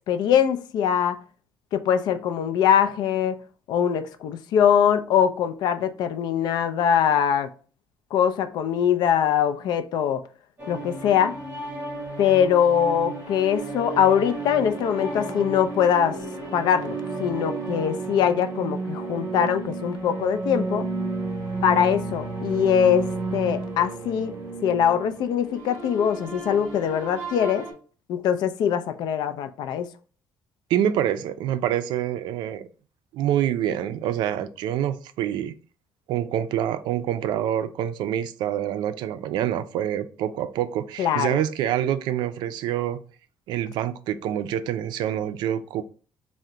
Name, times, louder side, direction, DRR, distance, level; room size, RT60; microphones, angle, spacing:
voice 1, 0.1-1.2 1.7-3.4 3.7-7.5 8.1-10.2 10.7-11.4 12.2-16.2 16.5-20.9 21.6-24.3 24.6-27.7 28.1-29.9 41.0-41.4, left 8 dB, 70° left, 0.4 m, -22 dB
sound 1, 10.6-27.7, right 3 dB, 25° right, 1.2 m, -32 dB
voice 2, 30.7-32.7 33.1-35.5 36.1-43.0 43.5-45.8, right 10 dB, 90° right, 0.3 m, -26 dB
3.7 x 2.1 x 4.4 m
cardioid pair, 165°, 7 cm